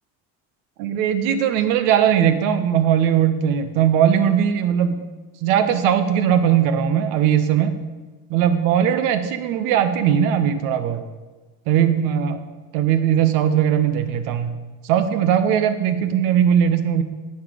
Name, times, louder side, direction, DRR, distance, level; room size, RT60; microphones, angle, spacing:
voice 1, 0.8-5.0 5.4-7.8 8.3-11.0 11.7-12.4 12.7-14.6 14.8-17.0, right 9 dB, 90° right, 9 dB, 1.2 m, -19 dB
17.5 x 5.9 x 5.2 m, 1.3 s
cardioid pair, 155°, 32 cm